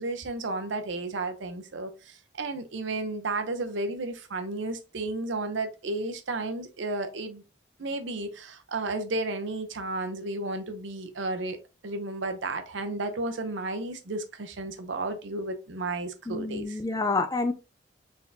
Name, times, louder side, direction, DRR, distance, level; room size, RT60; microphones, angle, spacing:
voice 1, 0.0-7.4 7.8-11.6 11.8-16.8, right 2 dB, 80° right, 0.7 m, -33 dB
voice 2, 16.3-17.5, left 3 dB, 20° left, 0.4 m, -28 dB
4.2 x 3.6 x 2.7 m
head